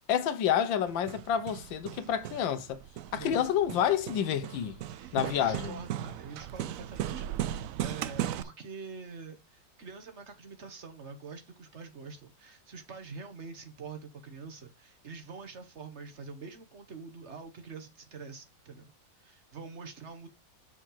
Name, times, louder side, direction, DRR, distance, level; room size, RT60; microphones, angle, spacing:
voice 1, 0.1-2.8 3.1-4.8 5.1-5.7, left 9 dB, 90° left, 1.6 m, -29 dB
Hammer, 0.9-8.4, right 11 dB, 80° right, 0.7 m, -37 dB
voice 2, 3.1-3.4 4.9-18.9 19.2-20.3, right 4 dB, 40° right, 1.6 m, -45 dB
6.5 x 5.0 x 5.7 m
omnidirectional pair, 2.0 m